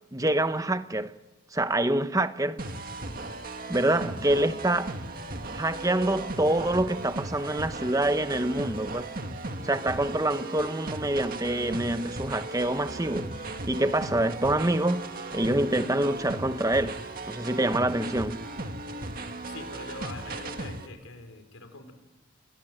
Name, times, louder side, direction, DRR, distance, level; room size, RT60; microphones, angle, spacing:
voice 1, 0.1-1.1 1.5-2.6 3.7-4.9 5.5-9.1 9.6-13.3 13.7-15.0 15.3-17.0 17.3-18.4, right 1 dB, 15° right, 0.8 m, -26 dB
sound 1, 2.6-20.9, right 2 dB, 45° right, 2.1 m, -37 dB
voice 2, 19.4-21.9, left 2 dB, 85° left, 5.0 m, -43 dB
29.5 x 22.5 x 7.8 m
head